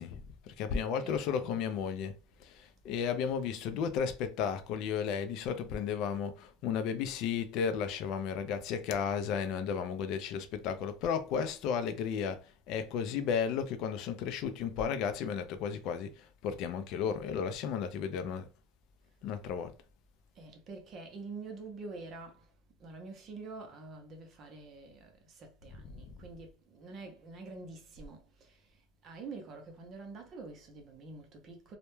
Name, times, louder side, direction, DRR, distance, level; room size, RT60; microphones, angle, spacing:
voice 1, 0.0-2.1 2.4-18.5 19.2-19.7 25.7-26.1, left 7 dB, 50° left, 0.3 m, -34 dB
voice 2, 1.0-1.6 20.4-22.5 22.8-28.6 29.0-31.8, right 3 dB, 35° right, 0.6 m, -47 dB
2.2 x 2.1 x 3.0 m
supercardioid pair, 150°, 0 cm